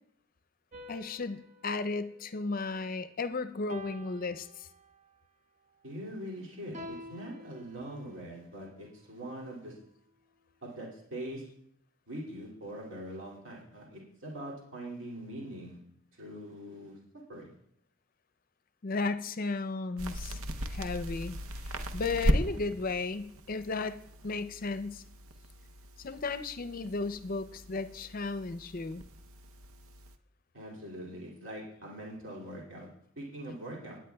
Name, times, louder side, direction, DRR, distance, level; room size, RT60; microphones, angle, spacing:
sound 1, 0.7-3.1 3.7-5.2 6.7-8.4, equal, 35° right, 0.8 m, -49 dB
voice 1, 0.9-4.7 18.8-20.4 20.7-21.4 21.7-25.0 26.0-29.0, left 3 dB, 45° left, 12 dB, 0.5 m, -34 dB
voice 2, 5.8-9.8 10.6-11.4 12.1-15.8 16.1-17.0 17.3-17.5 30.5-32.9 33.2-34.0, right 1 dB, 65° right, -3 dB, 2.6 m, -42 dB
sound 2, 20.0-30.2, equal, 90° right, 0.7 m, -37 dB
19.0 x 9.0 x 2.3 m, 0.73 s
head